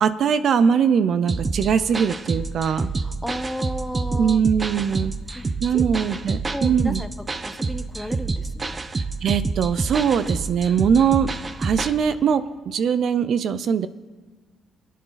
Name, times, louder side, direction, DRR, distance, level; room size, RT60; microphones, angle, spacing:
voice 1, 0.0-2.9 4.1-5.1 5.6-7.0 8.9-11.3 11.6-13.9, right 7 dB, 65° right, 13 dB, 0.6 m, -21 dB
sound 1, 1.3-11.9, right 3 dB, 30° right, 0.9 m, -28 dB
voice 2, 3.0-4.4 5.3-5.4 5.7-5.8 6.5-7.1 7.4-8.8, equal, ahead, 8 dB, 1.0 m, -32 dB
27.5 x 9.3 x 4.0 m, 1.4 s
cardioid pair, 90°, 0 cm